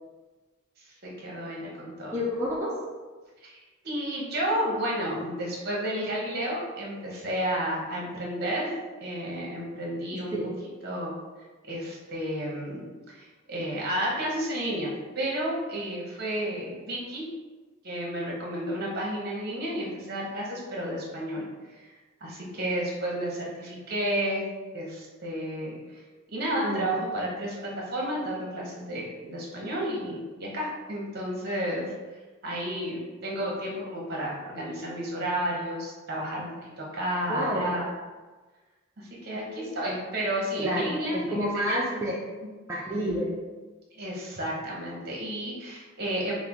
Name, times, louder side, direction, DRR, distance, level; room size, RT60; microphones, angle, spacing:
voice 1, 0.8-2.2 3.4-3.5 3.8-8.7 9.0-10.4 10.8-11.2 11.6-17.3 17.8-21.5 21.7-24.5 24.7-26.0 26.3-31.9 32.4-37.9 39.0-41.8 43.9-46.3, right 1 dB, 50° right, -3 dB, 1.0 m, -32 dB
voice 2, 2.1-2.8 10.1-10.5 26.6-26.9 37.3-37.8 39.3-39.7 40.6-42.2 42.7-43.4, equal, 15° right, -6 dB, 0.4 m, -30 dB
5.8 x 2.1 x 3.0 m, 1.3 s
head